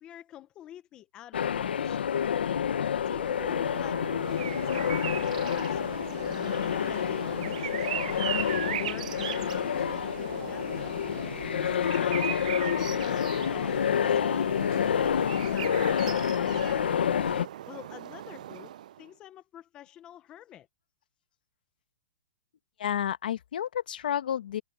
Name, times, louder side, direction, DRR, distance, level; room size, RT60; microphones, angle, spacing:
voice 1, 0.0-2.1 3.1-11.0 11.6-17.2 17.7-18.7 19.0-20.7, left 12 dB, 15° left, 0.7 m, -47 dB
sound 1, 1.3-17.5, left 8 dB, 80° left, 1.2 m, -28 dB
sound 2, 3.1-19.1, right 12 dB, 45° right, 0.6 m, -39 dB
sound 3, 4.2-16.2, right 20 dB, 30° right, 1.4 m, -53 dB
voice 2, 22.8-24.6, left 10 dB, 60° left, 1.6 m, -30 dB
hypercardioid pair, 170°, 5 cm